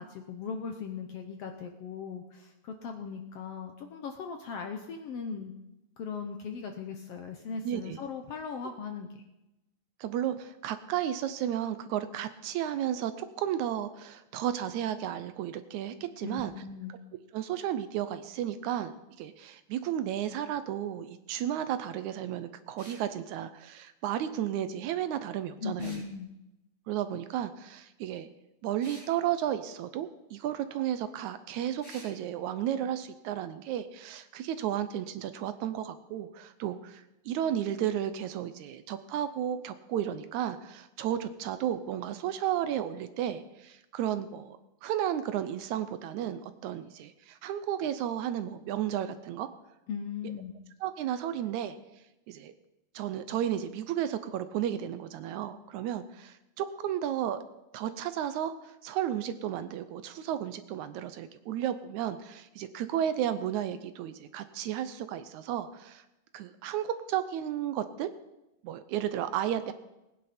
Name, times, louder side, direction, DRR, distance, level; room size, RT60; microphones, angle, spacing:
voice 1, 0.0-5.5 6.0-9.2 16.2-17.0 25.6-26.3 49.9-50.5, left 6 dB, 70° left, 5 dB, 1.5 m, -38 dB
voice 2, 7.6-8.0 10.0-16.5 17.3-26.0 26.9-28.3 28.6-49.5 50.8-51.8 52.3-52.5 52.9-57.4 57.7-66.0 66.3-68.1 68.6-69.7, right 10 dB, 75° right, 11 dB, 1.9 m, -33 dB
sound 1, 22.8-23.0 25.8-26.1 28.8-29.1 31.8-32.1, equal, 50° left, 6.4 m, -49 dB
20.0 x 10.0 x 4.3 m, 0.94 s
omnidirectional pair, 3.6 m